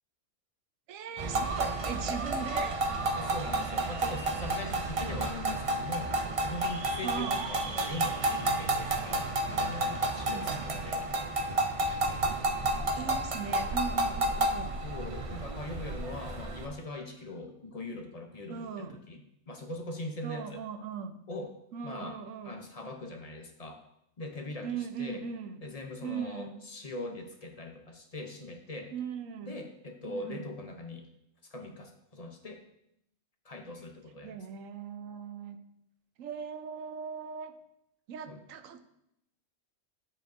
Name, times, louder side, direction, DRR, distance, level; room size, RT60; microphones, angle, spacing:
voice 1, 0.9-2.8 7.0-7.5 10.3-10.7 11.8-12.4 12.9-14.9 18.5-19.0 20.2-21.2 21.7-22.6 24.6-25.6 26.0-26.6 28.9-29.6 30.1-30.4 34.2-35.6 36.2-37.5 38.1-38.8, right 7 dB, 85° right, 9 dB, 1.1 m, -39 dB
sound 1, 1.2-16.7, right 2 dB, 45° right, 0.4 m, -31 dB
voice 2, 3.2-11.0 14.8-20.6 21.3-21.5 21.8-22.2 22.4-23.8 24.2-24.7 25.0-25.2 25.6-28.9 29.4-31.1 31.5-32.6 33.4-34.4 38.3-38.4, left 2 dB, 40° left, 4 dB, 0.7 m, -41 dB
9.1 x 7.4 x 2.6 m, 0.80 s
omnidirectional pair, 1.3 m